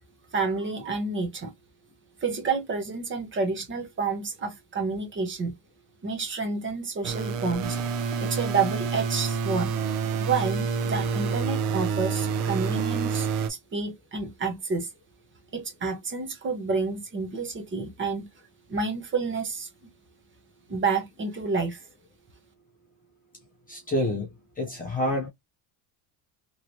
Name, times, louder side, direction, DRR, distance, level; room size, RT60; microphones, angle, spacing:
voice 1, 0.3-1.5 2.2-5.5 6.0-7.8 8.2-9.7 10.2-14.9 15.5-18.3 18.7-19.7 20.7-21.9, right 4 dB, 25° right, 0.8 m, -29 dB
sound 1, 7.0-13.5, right 6 dB, 75° right, 0.8 m, -28 dB
voice 2, 23.7-24.3 24.6-25.3, left 1 dB, 20° left, 0.6 m, -27 dB
3.1 x 2.9 x 2.7 m
cardioid pair, 150°, 48 cm